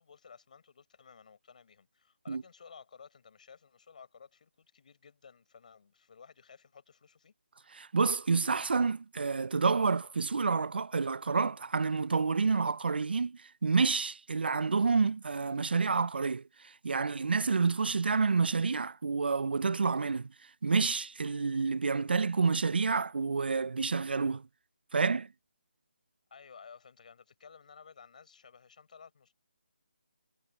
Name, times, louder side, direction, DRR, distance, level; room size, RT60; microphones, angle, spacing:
voice 1, 0.0-7.3 26.3-29.3, left 6 dB, 45° left, 4.9 m, -55 dB
voice 2, 7.7-16.4 16.8-20.3 20.6-24.5 24.9-25.3, right 4 dB, 65° right, 0.6 m, -29 dB
figure-of-eight pair, 165°, 6 cm